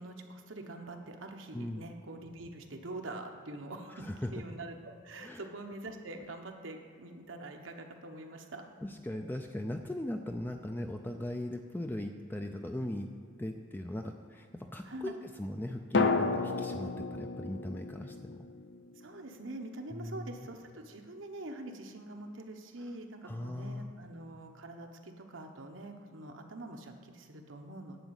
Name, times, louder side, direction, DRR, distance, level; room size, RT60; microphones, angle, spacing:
voice 1, 0.0-4.8 5.0-8.6 14.9-15.2 19.0-28.0, right 2 dB, 85° right, 4 dB, 1.2 m, -45 dB
voice 2, 1.5-1.9 3.9-4.3 5.2-5.4 8.8-18.4 19.9-20.5 23.2-23.9, left 1 dB, 10° left, 4 dB, 0.4 m, -39 dB
sound 1, 12.4-13.5 15.9-19.9 20.2-20.3, left 3 dB, 60° left, 0.6 m, -33 dB
11.0 x 5.0 x 8.1 m, 2.2 s
head